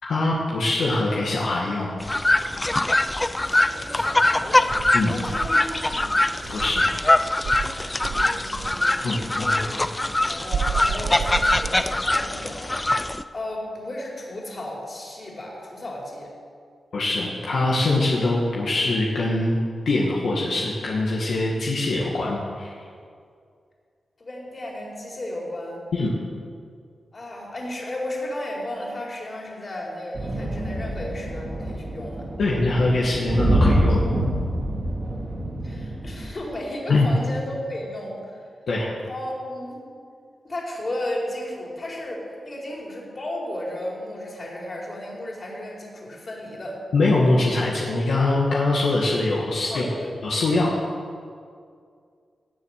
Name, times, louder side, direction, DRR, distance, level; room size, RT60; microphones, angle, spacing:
voice 1, 0.0-2.0 4.9-5.2 6.5-6.9 7.8-8.0 9.0-9.8 16.9-19.6 19.9-22.7 25.9-26.1 32.4-34.1 36.9-37.1 38.7-38.9 46.9-49.9 50.2-50.7, left 2 dB, 80° left, -4 dB, 1.9 m, -23 dB
sound 1, 2.0-13.2, left 2 dB, 20° left, 0.6 m, -23 dB
voice 2, 3.3-4.7 5.1-6.1 8.1-8.9 9.3-12.7 13.3-16.3 24.2-25.8 27.1-32.3 35.6-38.5 39.1-39.8 40.4-46.8 49.7-50.1, left 1 dB, 45° left, -2 dB, 4.5 m, -34 dB
Insect, 4.7-7.0 7.4-8.9 10.5-12.2, right 7 dB, 80° right, 0.5 m, -31 dB
sound 2, 30.1-36.3, right 1 dB, 45° right, 2.9 m, -25 dB
17.5 x 7.5 x 6.7 m, 2.2 s
cardioid pair, 55°, 0 cm